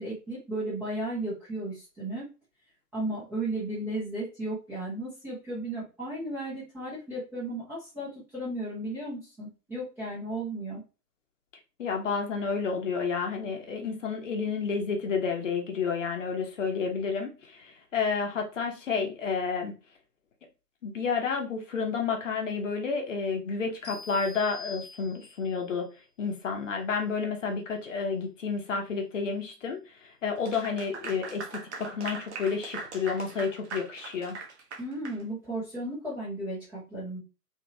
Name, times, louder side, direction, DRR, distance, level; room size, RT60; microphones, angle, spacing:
voice 1, 0.0-2.3 2.9-10.8 34.8-37.2, right 1 dB, 5° right, -10 dB, 0.6 m, -34 dB
voice 2, 11.8-19.8 20.8-25.9 26.2-34.4, left 5 dB, 50° left, 3 dB, 0.8 m, -30 dB
sound 1, 23.8-25.6, left 3 dB, 25° left, 1.0 m, -45 dB
Clapping / Applause, 30.4-35.2, right 4 dB, 45° right, 0.7 m, -40 dB
2.9 x 2.7 x 2.7 m, 0.30 s
figure-of-eight pair, 115°, 49 cm